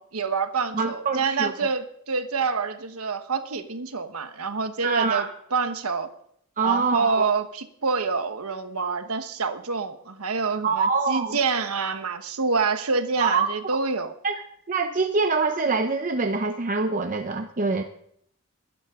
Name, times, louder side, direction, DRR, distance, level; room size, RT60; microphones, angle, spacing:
voice 1, 0.0-6.1 6.6-14.1, right 4 dB, 85° right, 1.2 m, -27 dB
voice 2, 0.7-1.5 4.8-5.3 6.6-7.3 10.6-11.4 13.2-13.8 14.2-14.3 14.7-17.8, right 4 dB, 40° right, 0.7 m, -25 dB
21.5 x 11.5 x 3.7 m
head